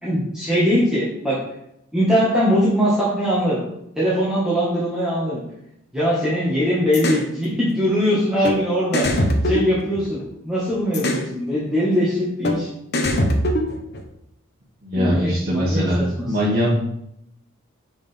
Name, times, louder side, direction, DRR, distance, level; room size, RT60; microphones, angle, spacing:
voice 1, 0.0-1.4 1.9-3.6 4.0-5.4 5.9-12.7 14.9-16.5, equal, 5° right, -10 dB, 1.5 m, -21 dB
sound 1, 6.9-7.3 8.4-8.6 8.9-10.3 10.9-11.3 12.4-12.6 12.9-14.0, left 1 dB, 55° left, 0.9 m, -21 dB
voice 2, 14.8-16.0 16.2-16.7, equal, 45° right, -7 dB, 1.6 m, -21 dB
6.1 x 5.2 x 3.4 m, 0.78 s
head